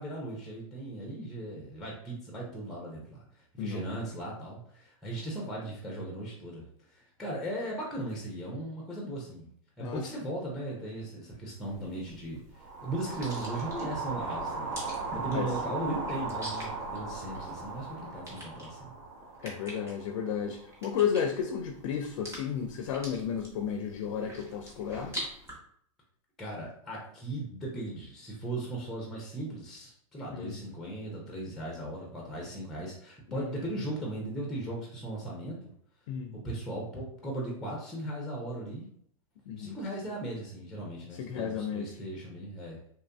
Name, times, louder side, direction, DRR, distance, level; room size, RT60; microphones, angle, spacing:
voice 1, 0.0-9.4 9.8-14.8 15.1-18.9 26.4-35.6 36.3-38.9 39.6-42.8, right 1 dB, ahead, -2 dB, 0.5 m, -38 dB
voice 2, 3.6-4.0 9.8-10.0 15.3-15.5 19.4-25.1 30.3-30.6 33.3-33.6 36.1-36.4 39.5-39.7 41.2-41.9, left 7 dB, 65° left, 5 dB, 0.4 m, -33 dB
sound 1, 11.6-25.5, equal, 15° right, 0.9 m, -46 dB
sound 2, 12.6-20.8, right 3 dB, 65° right, 0.8 m, -38 dB
2.9 x 2.5 x 2.2 m, 0.64 s
hypercardioid pair, 130°, 17 cm